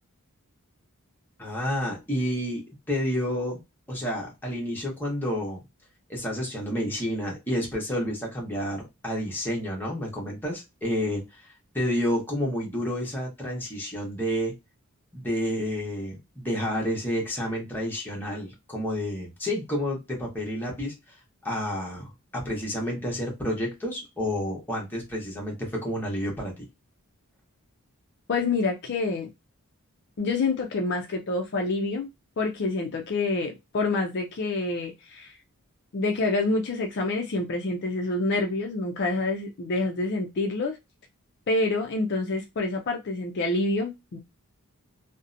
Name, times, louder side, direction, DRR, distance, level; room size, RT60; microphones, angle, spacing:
voice 1, 1.4-3.6 3.9-5.6 6.1-11.5 11.7-14.5 15.1-21.2 21.4-26.6, equal, 10° left, 0.9 m, -30 dB
voice 2, 28.3-29.3 30.2-32.1 32.4-35.3 35.9-40.8 41.5-44.2, left 2 dB, 50° left, 0.4 m, -27 dB
2.7 x 2.1 x 2.5 m
head